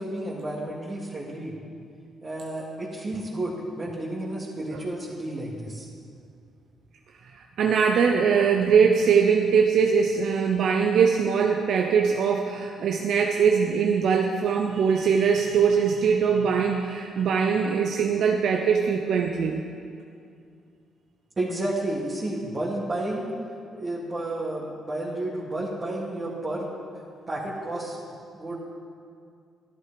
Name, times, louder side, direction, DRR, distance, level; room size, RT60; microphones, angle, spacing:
voice 1, 0.0-1.6 2.2-5.9 21.4-23.3 23.8-26.7 27.3-28.0 28.3-28.6, right 1 dB, 35° right, -6 dB, 2.4 m, -31 dB
voice 2, 7.3-19.6, right 6 dB, 70° right, 3 dB, 0.7 m, -22 dB
11.5 x 11.5 x 5.1 m, 2.4 s
supercardioid pair, 60°, 0 cm